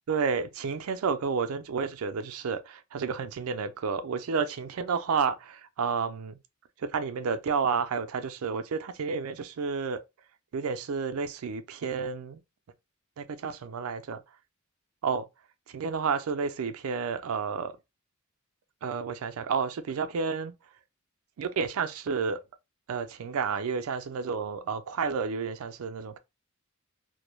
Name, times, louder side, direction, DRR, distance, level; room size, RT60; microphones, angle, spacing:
voice 1, 0.1-6.4 6.8-10.0 10.5-12.4 13.2-14.2 15.0-15.3 15.7-17.7 18.8-20.5 21.4-22.4 22.9-26.2, right 5 dB, 85° right, 0.4 m, -31 dB
2.2 x 2.1 x 3.0 m
head